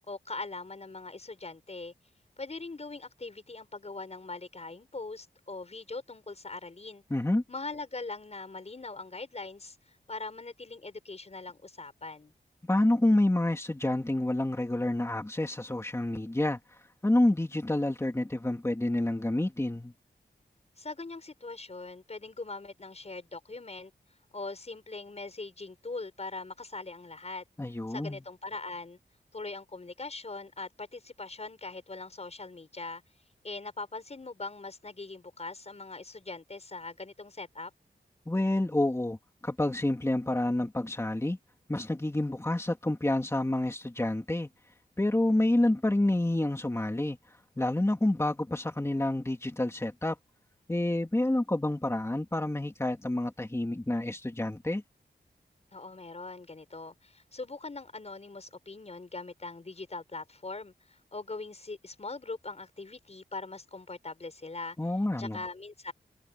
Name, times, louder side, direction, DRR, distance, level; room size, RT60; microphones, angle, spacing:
voice 1, 0.0-1.9 2.4-7.0 7.5-12.3 20.8-23.9 24.3-27.4 27.9-29.0 29.3-33.0 33.4-37.7 55.7-64.8 65.2-65.9, left 3 dB, 40° left, 5.9 m, -41 dB
voice 2, 7.1-7.4 12.7-16.6 17.0-19.9 27.6-28.2 38.3-39.2 39.4-41.4 41.7-44.5 45.0-47.2 47.6-50.2 50.7-54.8 64.8-65.4, left 1 dB, 15° left, 2.7 m, -28 dB
wide cardioid pair, 100°, 17 cm